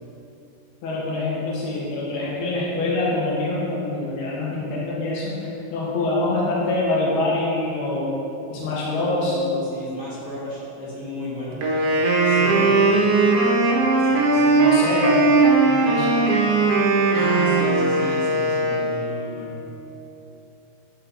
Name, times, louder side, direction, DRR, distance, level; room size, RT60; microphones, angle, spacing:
voice 1, 0.8-5.3 5.7-8.2 8.5-9.4 11.5-11.6 12.3-13.1 14.1-15.2 15.6-16.2, left 2 dB, 85° left, -5 dB, 3.4 m, -25 dB
voice 2, 8.8-11.6 17.1-19.5, left 1 dB, 45° left, -8 dB, 1.0 m, -33 dB
Wind instrument woodwind instrument, 11.6-19.2, right 3 dB, 70° right, 1.4 m, -19 dB
12.0 x 6.5 x 4.2 m, 2.9 s
omnidirectional pair, 4.4 m